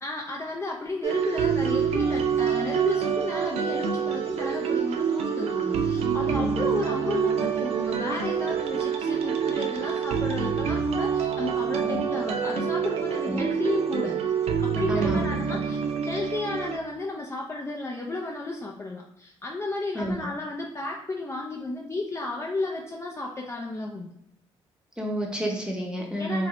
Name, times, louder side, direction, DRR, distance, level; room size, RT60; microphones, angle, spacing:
voice 1, 0.0-14.1 14.6-24.1 26.2-26.5, left 2 dB, 25° left, -1 dB, 0.4 m, -33 dB
sound 1, 1.0-16.8, right 7 dB, 65° right, 0.4 m, -26 dB
voice 2, 14.9-15.3 19.9-20.2 25.0-26.5, right 1 dB, 10° right, -1 dB, 0.8 m, -29 dB
2.5 x 2.0 x 2.9 m, 0.75 s
supercardioid pair, 60°, 11 cm